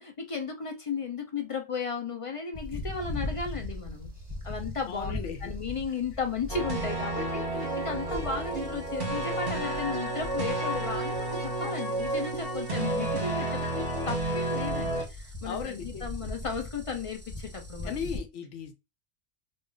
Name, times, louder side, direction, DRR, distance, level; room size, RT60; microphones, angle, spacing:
voice 1, 0.0-4.1 4.4-5.1 5.4-18.1, left 5 dB, 45° left, 0.4 m, -35 dB
sound 1, 2.5-18.2, left 2 dB, 35° right, 1.1 m, -41 dB
voice 2, 4.9-5.5 11.6-11.7 15.4-16.0 17.8-18.7, left 7 dB, 80° left, 1.0 m, -37 dB
sound 2, 6.5-15.0, right 2 dB, 50° right, 1.4 m, -31 dB
3.0 x 2.4 x 3.7 m
omnidirectional pair, 1.2 m